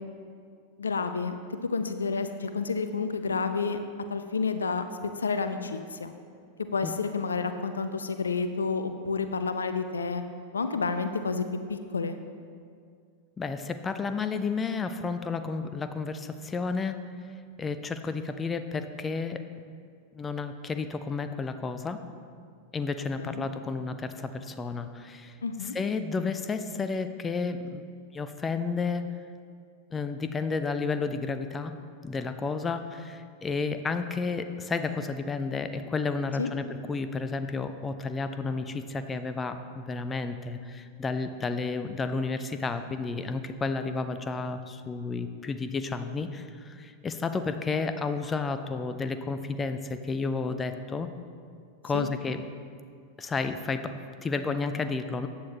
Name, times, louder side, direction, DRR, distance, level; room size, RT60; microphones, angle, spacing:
voice 1, 0.8-1.4 1.7-3.8 4.1-6.1 6.7-10.2 10.5-12.2 23.2-23.4 25.4-25.7 36.4-36.5 51.9-52.1, left 4 dB, 75° left, 9 dB, 0.6 m, -30 dB
voice 2, 13.4-17.0 17.6-19.4 20.1-22.0 22.7-25.4 25.6-27.8 28.1-29.0 29.9-31.7 32.0-51.1 51.8-52.4 53.2-55.3, left 4 dB, 15° left, 9 dB, 0.5 m, -31 dB
14.5 x 8.6 x 3.0 m, 2.2 s
figure-of-eight pair, 90°, 0 cm